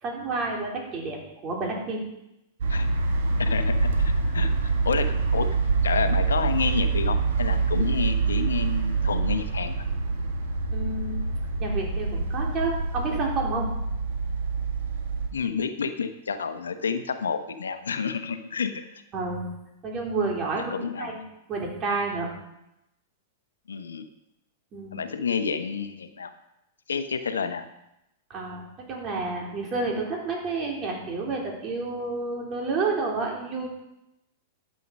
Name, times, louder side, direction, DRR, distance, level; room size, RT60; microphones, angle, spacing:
voice 1, 0.0-2.1 10.7-11.2 11.6-13.7 19.1-19.5 19.8-20.7 21.0-21.2 21.5-22.3 24.7-25.0 28.3-33.7, right 3 dB, 35° right, -1 dB, 3.8 m, -30 dB
sound 1, 2.6-15.3, right 4 dB, 70° right, 2.1 m, -26 dB
voice 2, 3.4-5.5 5.8-9.8 15.3-19.0 20.7-21.2 23.7-24.0 24.9-26.3 26.9-27.6, left 6 dB, 85° left, 9 dB, 1.0 m, -29 dB
12.5 x 7.7 x 5.4 m, 0.87 s
hypercardioid pair, 110°, 0 cm